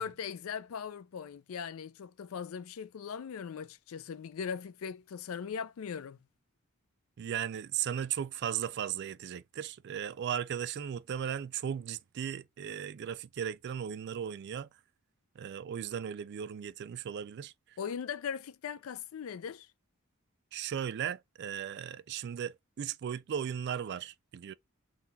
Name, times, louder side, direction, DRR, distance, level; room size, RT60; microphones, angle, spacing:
voice 1, 0.0-6.2 17.8-19.7, left 7 dB, 70° left, 0.4 m, -39 dB
voice 2, 7.2-14.7 15.4-17.8 20.5-24.5, right 9 dB, 55° right, 0.3 m, -36 dB
3.9 x 2.3 x 4.0 m
head